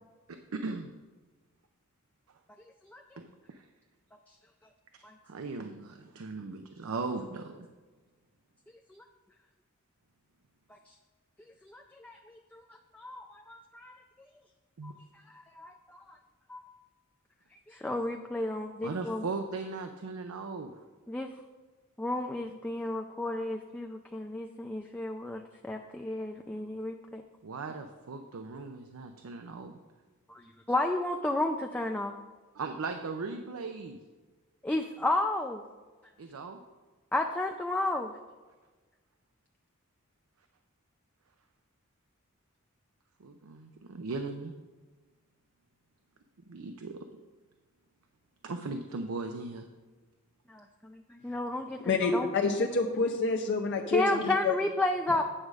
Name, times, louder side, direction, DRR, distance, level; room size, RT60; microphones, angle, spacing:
voice 1, 0.3-0.9 3.2-3.6 5.3-7.5 14.8-14.9 18.8-20.7 27.4-29.8 32.6-34.0 36.2-36.6 43.2-44.5 46.5-47.1 48.4-49.7, right 3 dB, 85° right, 6 dB, 0.5 m, -38 dB
voice 2, 2.8-3.2 4.3-4.4 5.0-5.1 8.9-9.0 10.7-10.9 11.6-12.6 12.9-14.0 14.8-16.2 16.5-16.6 17.5-19.3 21.1-21.3 22.0-27.2 30.3-32.1 34.6-35.6 37.1-38.1 50.5-52.3 53.9-55.2, left 2 dB, 5° left, 3 dB, 0.3 m, -33 dB
voice 3, 51.9-54.5, left 4 dB, 55° left, 3 dB, 0.6 m, -28 dB
8.7 x 6.3 x 4.8 m, 1.3 s
head